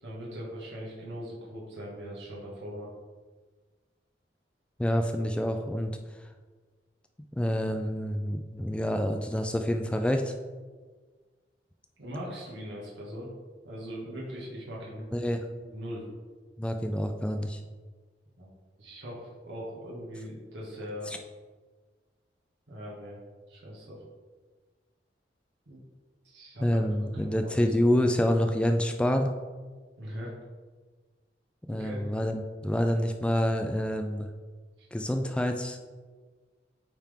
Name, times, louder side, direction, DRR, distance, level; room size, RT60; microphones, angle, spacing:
voice 1, 0.0-2.9 12.0-13.3 13.6-15.2 15.6-16.1 18.4-18.5 18.8-21.1 22.7-23.2 23.5-24.0 25.7-25.8 26.2-26.8 27.1-27.5 30.0-30.3 31.7-32.0 34.8-35.0, equal, 90° right, -5 dB, 1.6 m, -40 dB
voice 2, 4.8-6.0 7.3-10.3 15.1-15.4 16.6-17.6 21.1-21.2 26.6-29.3 31.7-34.3 34.9-35.8, equal, 5° left, 5 dB, 0.3 m, -27 dB
8.9 x 3.7 x 3.5 m, 1.4 s
head